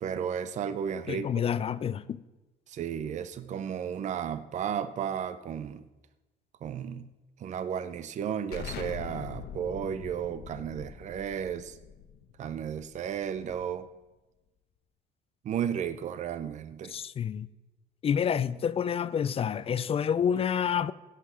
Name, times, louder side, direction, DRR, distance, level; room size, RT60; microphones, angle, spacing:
voice 1, 0.0-1.4 2.7-5.8 6.6-7.1 7.4-11.8 12.4-13.9 15.4-16.9, right 8 dB, 45° right, 0.6 m, -33 dB
voice 2, 1.1-2.2 16.9-17.5 18.0-20.9, left 8 dB, 35° left, 0.4 m, -28 dB
Explosion, 8.5-13.9, left 8 dB, 70° left, 1.0 m, -43 dB
16.5 x 5.7 x 6.0 m
cardioid pair, 110°, 17 cm